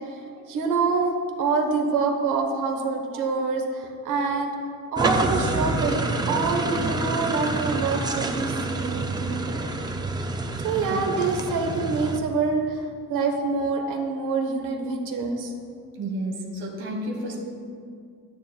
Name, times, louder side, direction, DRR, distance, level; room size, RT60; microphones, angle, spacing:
voice 1, 0.5-4.5 4.9-9.8 10.6-15.5, right 4 dB, 70° right, 3 dB, 1.3 m, -26 dB
sound 1, 5.0-12.2, right 2 dB, 15° right, 0.4 m, -27 dB
voice 2, 10.8-11.1 16.0-17.4, right 1 dB, 40° right, -1 dB, 1.5 m, -31 dB
12.5 x 9.9 x 2.3 m, 2.1 s
cardioid pair, 155°, 33 cm